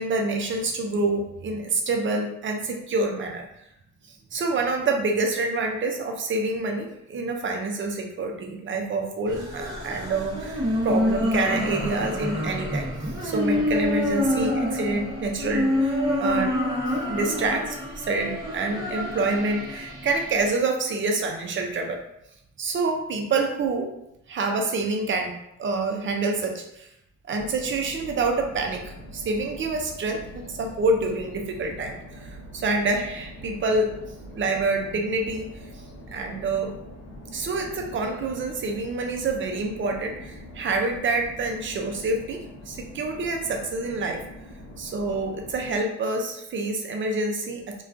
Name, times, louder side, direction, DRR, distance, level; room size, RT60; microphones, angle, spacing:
voice 1, 0.0-3.5 4.3-12.9 13.2-16.5 17.1-22.0 22.6-23.9 24.3-26.9 27.3-33.9 34.3-35.5 36.1-36.7 37.3-44.2 44.8-47.8, right 3 dB, 40° right, 3 dB, 0.5 m, -27 dB
sound 1, 9.3-20.5, left 1 dB, 15° right, 0.7 m, -27 dB
sound 2, 27.3-45.8, left 1 dB, 60° left, 0.7 m, -43 dB
2.3 x 2.2 x 2.5 m, 0.81 s
cardioid pair, 90°, 30 cm